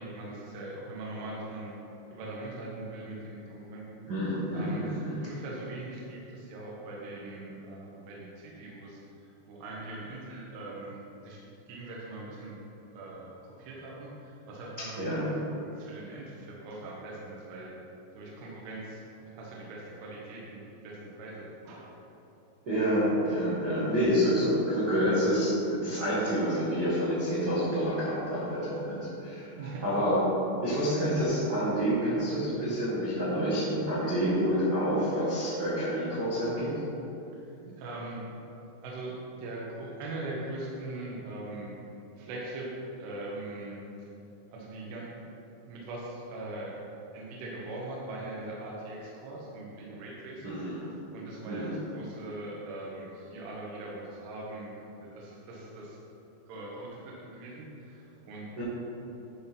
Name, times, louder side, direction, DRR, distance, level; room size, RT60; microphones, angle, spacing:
voice 1, 0.0-1.7 2.1-4.1 4.5-9.0 9.5-12.6 12.9-15.3 15.6-17.8 18.2-22.0 23.4-23.5 29.6-29.8 37.7-38.2 38.8-41.8 42.2-43.8 44.5-45.1 45.6-46.8 47.1-50.6 51.1-56.0 56.5-58.5, right 2 dB, 70° right, -4 dB, 2.7 m, -41 dB
voice 2, 4.1-5.3 14.8-15.4 22.6-30.2 30.6-36.7 50.4-50.8 51.5-51.7 58.6-58.7, equal, 85° right, -10 dB, 0.9 m, -28 dB
11.0 x 3.8 x 5.8 m, 2.9 s
omnidirectional pair, 5.3 m